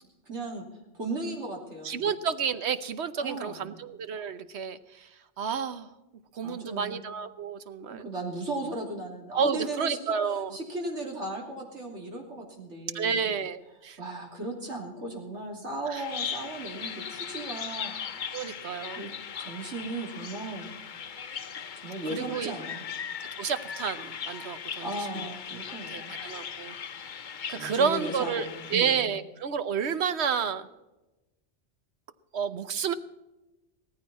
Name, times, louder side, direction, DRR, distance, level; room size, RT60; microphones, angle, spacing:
voice 1, 0.3-0.7 1.0-2.0 3.2-3.8 6.4-7.0 8.0-13.3 14.0-18.6 19.0-19.1 19.4-20.7 21.8-22.8 24.8-26.2 27.5-29.0, right 2 dB, 90° right, 0 dB, 3.2 m, -36 dB
voice 2, 1.8-5.1 5.4-5.9 6.3-8.0 9.3-10.6 12.9-14.0 15.9-16.0 18.3-19.1 22.1-22.5 23.4-24.9 25.9-26.7 27.5-30.7 32.3-32.9, right 6 dB, 70° right, 12 dB, 1.1 m, -30 dB
Bird vocalization bird call bird song, 15.9-28.8, left 7 dB, 50° left, 0.8 m, -39 dB
17.5 x 14.0 x 4.2 m, 1.0 s
omnidirectional pair, 1.2 m